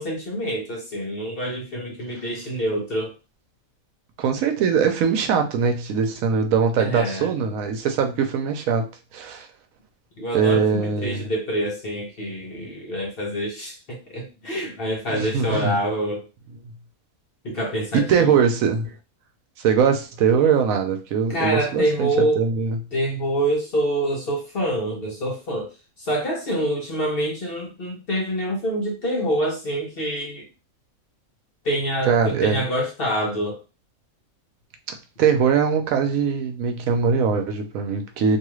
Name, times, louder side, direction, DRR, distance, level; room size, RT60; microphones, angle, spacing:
voice 1, 0.0-3.1 6.8-7.3 10.2-16.2 17.4-18.4 21.3-22.4 22.9-25.7 26.0-30.5 31.6-33.6, right 1 dB, 50° left, -1 dB, 0.8 m, -26 dB
voice 2, 4.2-8.9 9.1-9.5 10.3-11.3 15.1-15.7 17.9-18.9 19.6-22.8 32.1-32.6 35.2-38.4, right 6 dB, 85° right, 6 dB, 1.0 m, -21 dB
2.7 x 2.3 x 3.0 m, 0.30 s
omnidirectional pair, 1.4 m